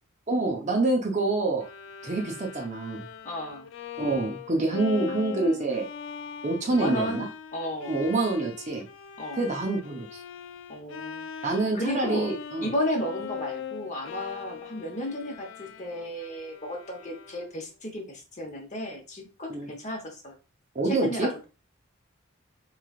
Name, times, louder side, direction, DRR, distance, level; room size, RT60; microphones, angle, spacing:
voice 1, 0.3-1.7 2.0-3.1 4.0-5.9 6.4-7.3 7.9-8.9 9.3-10.2 11.4-12.7 19.5-19.7 20.7-21.3, right 2 dB, 35° right, 2 dB, 0.7 m, -26 dB
Bowed string instrument, 1.6-17.7, left 7 dB, 65° left, 0.3 m, -40 dB
voice 2, 3.2-3.7 6.7-7.2 7.5-8.1 9.2-9.5 10.7-12.3 12.6-20.3 20.8-21.5, left 1 dB, 35° left, 1 dB, 0.9 m, -33 dB
3.8 x 3.1 x 2.4 m, 0.31 s
head